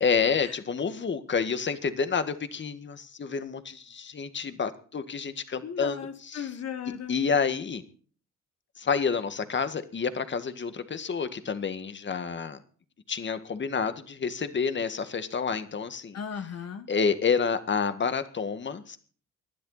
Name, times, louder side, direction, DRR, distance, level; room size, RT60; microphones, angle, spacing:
voice 1, 0.0-6.5 7.1-7.8 8.8-12.6 13.1-16.2 16.9-19.0, left 5 dB, 40° left, 10 dB, 1.9 m, -29 dB
voice 2, 5.6-7.1 16.1-16.9, left 7 dB, 55° left, 7 dB, 1.6 m, -36 dB
20.0 x 12.0 x 4.2 m, 0.43 s
cardioid pair, 90°, 30 cm